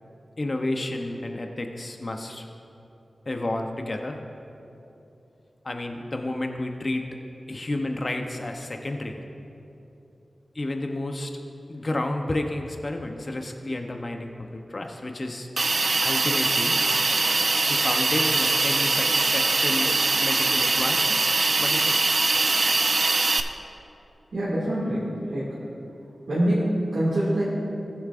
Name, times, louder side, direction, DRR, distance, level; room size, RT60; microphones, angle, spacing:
voice 1, 0.4-2.5 3.3-4.2 5.6-7.1 7.5-9.2 10.5-11.3 11.7-15.5 16.0-16.8 17.7-19.9 20.2-21.1 21.6-22.0, left 2 dB, 40° left, 3 dB, 0.7 m, -31 dB
Hiss, 15.6-23.4, right 3 dB, 60° right, 0.5 m, -22 dB
voice 2, 24.3-25.6 26.3-27.4, right 1 dB, 75° right, -9 dB, 2.1 m, -25 dB
19.0 x 7.1 x 2.5 m, 2.9 s
wide cardioid pair, 85°, 0 cm